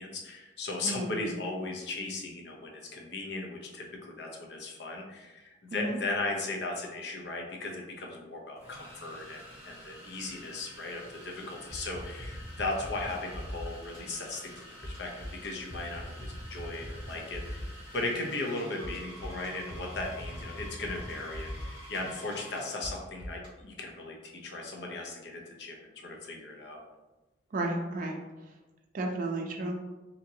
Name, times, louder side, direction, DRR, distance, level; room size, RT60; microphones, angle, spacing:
voice 1, 0.0-17.7 17.9-26.8, left 2 dB, 70° left, 0 dB, 0.6 m, -37 dB
voice 2, 0.8-1.4 5.7-6.0 27.5-28.2 28.9-29.8, right 2 dB, 50° right, 1 dB, 0.4 m, -32 dB
sound 1, 7.4-7.5 8.6-22.7, equal, 20° left, 1.2 m, -49 dB
sound 2, 11.7-23.5, equal, 45° left, 1.4 m, -41 dB
2.9 x 2.6 x 2.7 m, 1.1 s
head